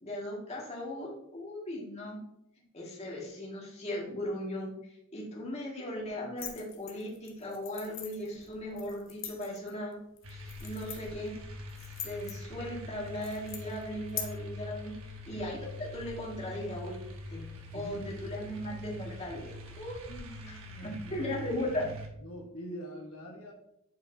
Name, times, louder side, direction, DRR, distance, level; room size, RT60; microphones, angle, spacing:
voice 1, 0.0-2.2 2.7-4.7 5.1-9.9 10.3-11.3 11.8-14.9 15.3-17.0 17.3-17.4 17.7-20.0 20.5-20.6 20.8-21.9, left 1 dB, 30° left, -4 dB, 1.8 m, -37 dB
sound 1, 6.4-14.2, left 9 dB, 60° left, 1.0 m, -44 dB
sound 2, 10.2-22.1, left 1 dB, 70° right, 1.1 m, -44 dB
voice 2, 17.7-18.3 20.1-21.8 22.2-23.5, equal, 80° left, 0 dB, 1.2 m, -45 dB
8.0 x 4.8 x 2.7 m, 0.77 s
head